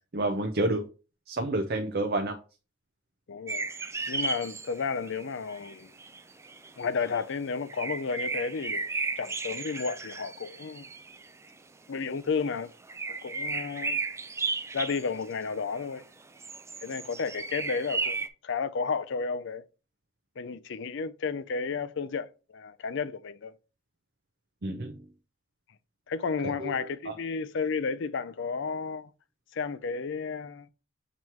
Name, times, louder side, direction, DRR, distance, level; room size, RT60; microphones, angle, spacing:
voice 1, 0.1-0.8 1.3-2.4 24.6-25.1 26.6-27.1, right 2 dB, 50° right, 0.7 m, -29 dB
voice 2, 3.3-3.7 4.1-5.9 6.8-8.9 9.2-10.9 11.9-12.7 13.1-14.0 14.7-16.0 16.8-19.6 20.4-23.5 26.1-29.1 29.5-30.7, left 5 dB, 60° left, 0.5 m, -32 dB
sound 1, 3.5-5.2 5.5-7.2 7.7-11.5 12.9-16.0 16.4-18.3, right 4 dB, 15° right, 0.4 m, -34 dB
7.4 x 3.1 x 4.5 m
head